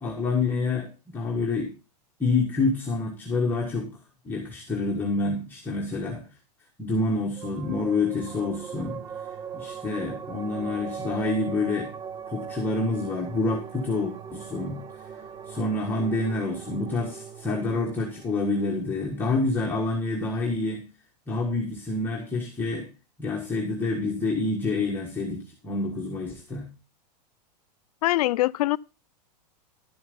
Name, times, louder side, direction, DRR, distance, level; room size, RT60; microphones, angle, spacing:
voice 1, 0.0-1.7 2.2-3.9 4.2-6.2 6.8-9.0 9.5-11.9 12.3-14.8 15.5-20.8 21.3-22.9 23.2-26.6, left 3 dB, 10° left, 1.4 m, -27 dB
sound 1, 7.4-20.2, right 7 dB, 20° right, 0.5 m, -40 dB
voice 2, 28.0-28.8, left 17 dB, 65° left, 0.4 m, -23 dB
11.5 x 7.0 x 5.2 m
supercardioid pair, 155°, 21 cm